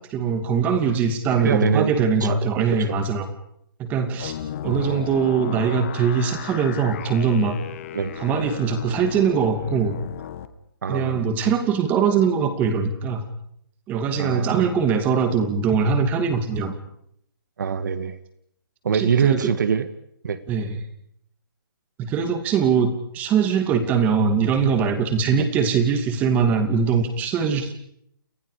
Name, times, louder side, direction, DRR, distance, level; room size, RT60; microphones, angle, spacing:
voice 1, 0.1-3.3 3.8-4.3 4.6-7.6 8.2-10.0 10.9-13.3 13.9-16.7 18.9-19.5 20.5-20.8 22.0-27.7, right 6 dB, 15° right, 8 dB, 2.5 m, -22 dB
voice 2, 1.3-1.9 2.2-2.3 2.6-2.8 4.6-5.0 7.9-8.1 10.8-11.2 14.2-14.7 17.6-18.2 18.8-19.9 20.2-20.4 25.4-25.5, right 6 dB, 55° right, 12 dB, 1.9 m, -24 dB
sound 1, 4.2-10.5, left 10 dB, 35° left, 2.1 m, -35 dB
30.0 x 29.5 x 5.0 m, 0.72 s
hypercardioid pair, 165°, 12 cm